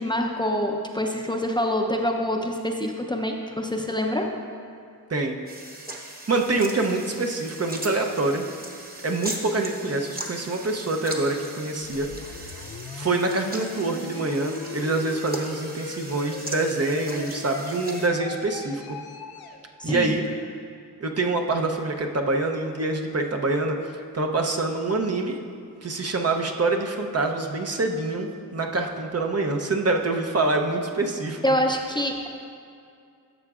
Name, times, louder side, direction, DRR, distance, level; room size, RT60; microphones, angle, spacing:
voice 1, 0.0-4.3 19.8-20.2 31.4-32.3, equal, 10° left, 2 dB, 0.6 m, -26 dB
sound 1, 5.5-18.1, right 2 dB, 25° right, 1.1 m, -39 dB
voice 2, 6.3-8.5 9.0-12.1 12.5-12.6 12.9-19.0 19.8-20.2 21.0-23.8 24.1-25.4 25.8-31.4, right 2 dB, 45° right, 2 dB, 0.7 m, -25 dB
sound 2, 11.8-19.6, left 5 dB, 90° left, 0.6 m, -39 dB
12.0 x 6.6 x 2.4 m, 2.4 s
cardioid pair, 50°, 36 cm